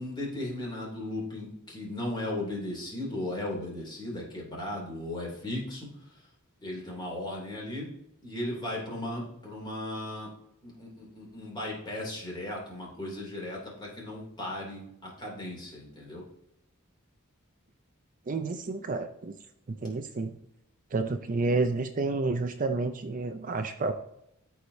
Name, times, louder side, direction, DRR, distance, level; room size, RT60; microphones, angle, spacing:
voice 1, 0.0-5.9 6.6-7.9 8.2-10.3 10.6-16.2, left 1 dB, 20° left, -3 dB, 2.8 m, -36 dB
voice 2, 18.3-19.4 19.7-20.3 20.9-23.9, right 3 dB, 40° right, 8 dB, 0.5 m, -30 dB
12.5 x 4.8 x 2.7 m, 0.80 s
head